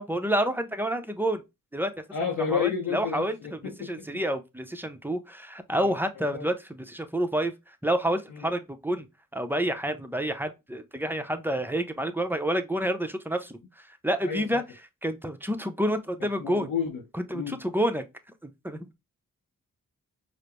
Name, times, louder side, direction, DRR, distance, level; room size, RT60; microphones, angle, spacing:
voice 1, 0.0-1.4 1.7-2.0 2.5-9.1 9.3-14.6 15.0-16.7 17.3-18.0 18.4-18.8, right 1 dB, 5° right, 0.6 m, -29 dB
voice 2, 2.1-4.1 5.8-5.9 6.3-6.5 8.3-8.5 14.2-14.6 16.4-17.0 17.3-17.6, left 7 dB, 80° left, 0.7 m, -31 dB
4.8 x 2.0 x 2.9 m
cardioid pair, 45°, 35 cm